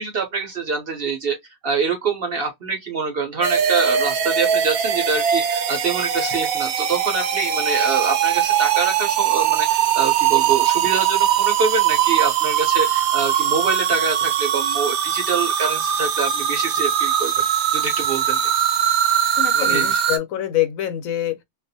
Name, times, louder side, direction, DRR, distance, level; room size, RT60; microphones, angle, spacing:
voice 1, 0.0-1.4 1.6-17.4 17.7-18.5 19.5-20.0, right 4 dB, 55° right, 0.7 m, -25 dB
sound 1, 3.4-20.2, right 9 dB, 80° right, 1.0 m, -21 dB
voice 2, 19.4-21.4, left 13 dB, 75° left, 1.0 m, -25 dB
2.5 x 2.3 x 2.6 m
omnidirectional pair, 1.5 m